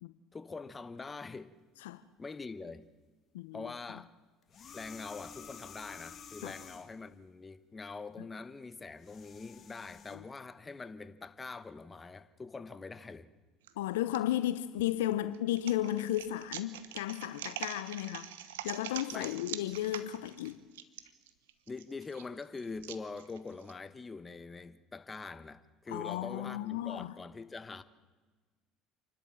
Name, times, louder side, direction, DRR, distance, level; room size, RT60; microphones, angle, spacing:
voice 1, 0.3-1.5 2.2-2.8 3.5-4.1 4.7-13.3 19.1-19.4 21.7-27.8, left 4 dB, 25° left, 1.2 m, -44 dB
voice 2, 3.3-3.7 6.4-6.6 10.1-10.2 13.8-20.6 25.9-27.1, left 13 dB, 85° left, 0.6 m, -34 dB
sound 1, 4.4-7.0 8.8-10.2, left 7 dB, 45° left, 2.2 m, -50 dB
sound 2, 13.6-14.2 14.8-23.7, right 11 dB, 85° right, 1.0 m, -44 dB
28.0 x 12.0 x 7.6 m
hypercardioid pair, 70°, 0 cm